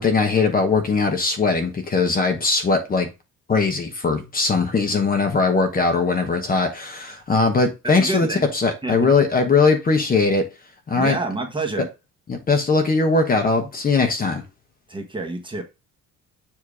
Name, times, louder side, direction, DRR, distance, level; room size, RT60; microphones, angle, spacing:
voice 1, 0.0-3.1 3.5-10.4 10.9-11.2 12.3-14.4, left 4 dB, 25° left, 1.0 m, -20 dB
voice 2, 7.8-8.5 8.8-9.1 10.9-11.9 14.9-15.6, right 3 dB, 15° right, 1.1 m, -28 dB
7.3 x 2.8 x 4.8 m
cardioid pair, 145°, 33 cm